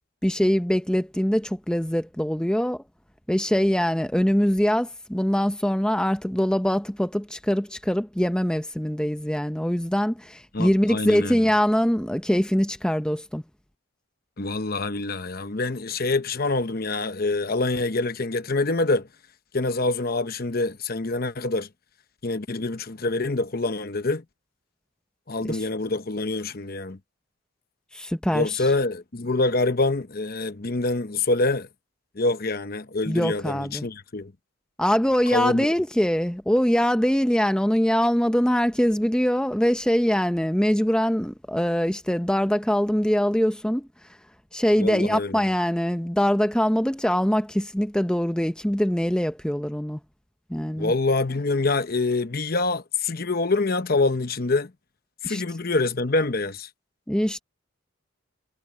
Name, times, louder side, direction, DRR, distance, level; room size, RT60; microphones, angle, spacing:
voice 1, 0.2-2.8 3.3-13.4 25.5-25.6 27.9-28.7 33.1-33.9 34.8-43.9 44.5-50.0 50.5-50.9 55.2-55.4 57.1-57.4, equal, 5° left, 0.7 m, -23 dB
voice 2, 10.5-11.4 14.4-19.1 19.5-21.7 22.2-24.2 25.3-27.0 28.3-31.7 32.2-34.3 35.3-35.7 44.8-45.5 50.8-54.7 55.2-56.7, left 3 dB, 45° left, 0.9 m, -25 dB
head